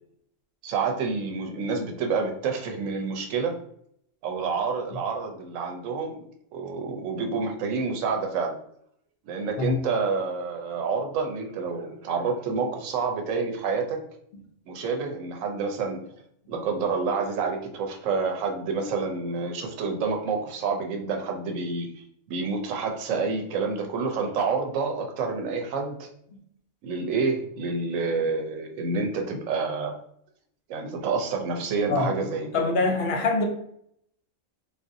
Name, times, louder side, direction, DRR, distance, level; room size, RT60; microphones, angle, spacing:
voice 1, 0.6-3.6 4.2-6.2 6.5-8.6 9.2-14.0 14.7-16.1 16.5-26.1 26.8-30.0 30.7-32.5, right 4 dB, 80° right, 3 dB, 1.0 m, -28 dB
voice 2, 32.5-33.4, left 3 dB, 60° left, 3 dB, 0.8 m, -24 dB
3.7 x 2.5 x 2.6 m, 0.68 s
omnidirectional pair, 1.3 m